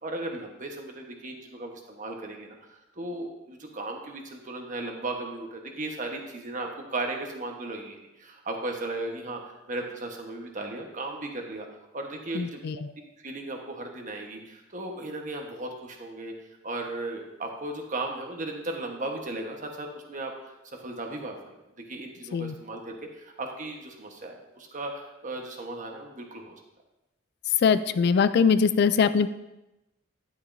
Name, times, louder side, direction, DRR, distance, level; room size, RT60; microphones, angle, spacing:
voice 1, 0.0-9.4 9.7-11.7 11.9-12.6 13.2-16.3 16.6-20.3 20.8-26.5, right 2 dB, 40° right, 2 dB, 1.2 m, -36 dB
voice 2, 12.3-12.8 22.3-22.5 27.6-29.3, left 6 dB, 55° left, 14 dB, 0.3 m, -22 dB
10.5 x 8.9 x 2.7 m, 0.96 s
head